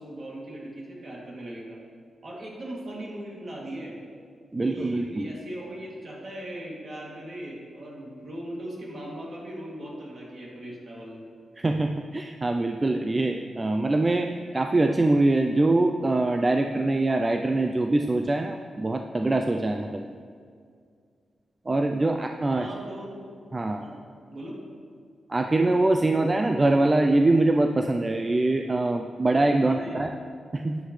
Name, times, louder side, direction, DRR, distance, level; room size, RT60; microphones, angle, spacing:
voice 1, 0.0-1.8 2.2-4.0 4.6-11.2 22.4-23.3 23.7-24.0 24.3-24.6 29.6-30.0, right 1 dB, 50° right, -4 dB, 2.7 m, -39 dB
voice 2, 4.5-5.3 11.6-20.1 21.7-22.7 23.5-23.8 25.3-30.1 30.5-30.8, right 2 dB, 25° right, 4 dB, 0.4 m, -23 dB
12.5 x 9.5 x 3.3 m, 2.2 s
wide cardioid pair, 125°, 0 cm